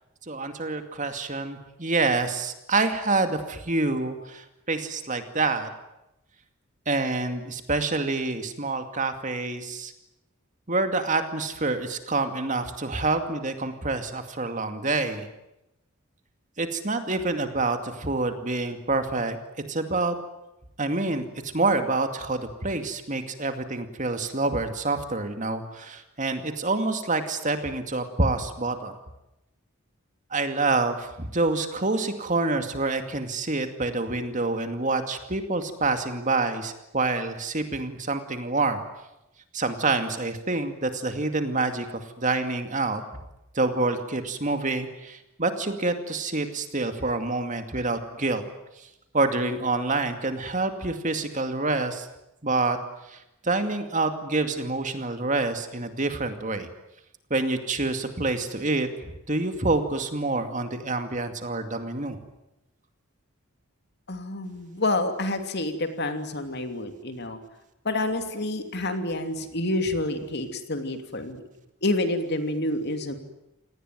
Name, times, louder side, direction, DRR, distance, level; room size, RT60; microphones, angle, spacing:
voice 1, 0.3-5.7 6.9-9.9 10.7-15.3 16.6-19.4 19.7-20.1 20.8-28.9 30.3-38.8 39.5-43.0 43.5-48.4 48.8-48.9 49.1-52.1 52.4-52.8 53.1-56.7 57.3-58.9 59.3-62.2, right 3 dB, 35° right, 7 dB, 2.4 m, -27 dB
voice 2, 64.1-67.4 67.8-71.4 71.8-73.1, left 2 dB, 50° left, 7 dB, 2.8 m, -28 dB
28.5 x 19.0 x 9.3 m, 0.90 s
head